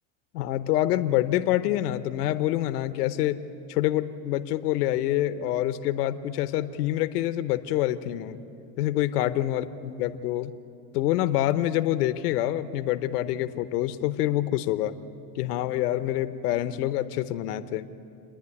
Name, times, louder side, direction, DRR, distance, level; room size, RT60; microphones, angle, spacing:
voice 1, 0.3-8.4 8.8-10.5 10.9-15.0 15.3-17.9, left 13 dB, 90° left, 12 dB, 0.9 m, -26 dB
28.0 x 10.0 x 9.8 m, 2.6 s
supercardioid pair, 105°, 45 cm